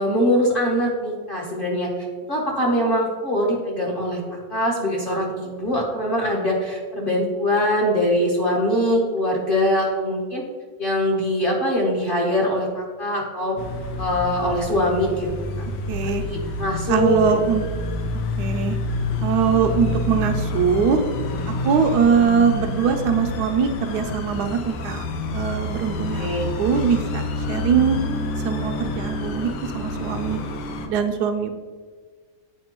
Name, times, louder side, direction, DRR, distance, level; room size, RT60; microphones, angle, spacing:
voice 1, 0.0-1.9 2.3-4.2 4.5-10.4 10.8-13.5 14.0-15.3 16.0-17.3 26.2-26.5, equal, 40° left, -2 dB, 0.9 m, -22 dB
sound 1, 13.6-30.9, left 2 dB, 85° left, 1.3 m, -28 dB
voice 2, 15.9-16.2 16.9-17.7 18.4-18.8 19.2-21.0 21.6-25.0 25.3-26.3 26.6-27.2 27.5-28.0 28.4-30.4 30.9-31.5, right 7 dB, 75° right, 5 dB, 1.1 m, -21 dB
8.4 x 4.7 x 2.9 m, 1.5 s
omnidirectional pair, 1.8 m